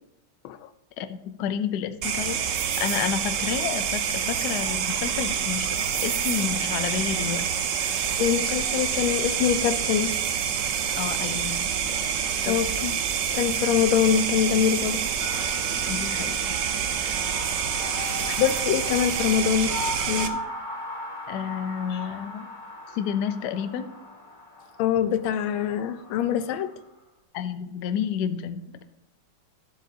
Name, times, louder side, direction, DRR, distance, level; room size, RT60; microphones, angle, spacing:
voice 1, 1.0-2.4 2.8-7.5 11.0-11.6 12.4-12.6 15.9-16.6 21.3-22.5 22.9-23.9 27.3-28.8, left 8 dB, 65° left, 1.1 m, -30 dB
sound 1, 2.0-20.3, right 8 dB, 85° right, 0.7 m, -27 dB
voice 2, 8.2-10.2 12.5-13.0 13.3-15.1 18.3-19.7 20.1-20.4 21.9-22.0 24.8-26.7, left 9 dB, 85° left, 1.4 m, -24 dB
sound 2, 15.2-26.8, left 1 dB, 30° left, 1.2 m, -38 dB
13.5 x 7.6 x 2.7 m
omnidirectional pair, 2.2 m